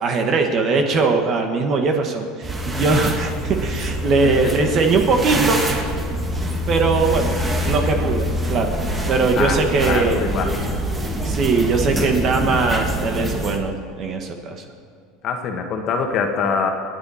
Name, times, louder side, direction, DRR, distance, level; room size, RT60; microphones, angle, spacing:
voice 1, 0.0-5.6 6.7-7.4 7.6-8.7 9.1-10.2 11.2-14.6, right 4 dB, 35° right, 4 dB, 1.5 m, -20 dB
sound 1, 2.4-13.6, equal, 15° right, 1.6 m, -25 dB
voice 2, 9.4-10.8 15.2-16.7, left 5 dB, 40° left, 4 dB, 1.7 m, -24 dB
28.5 x 9.6 x 4.3 m, 2.3 s
cardioid pair, 150°, 0 cm